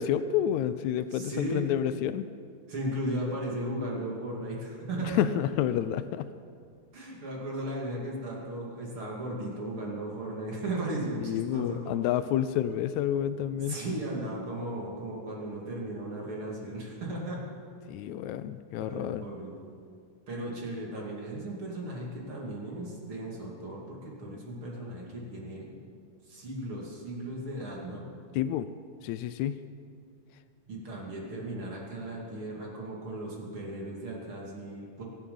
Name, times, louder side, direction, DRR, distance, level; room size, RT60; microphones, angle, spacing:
voice 1, 0.0-2.2 5.0-6.3 11.2-13.8 17.9-19.3 28.4-28.7 29.0-29.6, left 10 dB, 85° left, 13 dB, 1.6 m, -29 dB
voice 2, 1.1-1.6 2.7-5.2 6.9-12.0 13.6-17.4 18.7-19.7 20.3-25.7 26.3-28.1 30.6-35.0, right 1 dB, 40° right, -3 dB, 3.0 m, -36 dB
24.0 x 9.0 x 5.5 m, 2.3 s
omnidirectional pair, 3.8 m